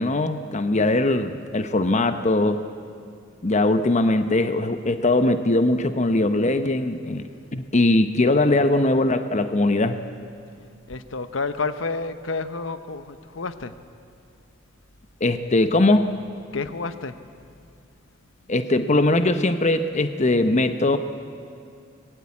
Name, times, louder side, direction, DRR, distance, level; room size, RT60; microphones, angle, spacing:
voice 1, 0.0-2.6 3.4-7.2 7.5-10.0 15.2-16.1 18.5-21.0, left 2 dB, 35° left, 9 dB, 0.9 m, -20 dB
voice 2, 10.5-13.8 16.5-17.2, left 3 dB, 70° left, 11 dB, 1.0 m, -30 dB
25.0 x 20.5 x 8.6 m, 2.4 s
head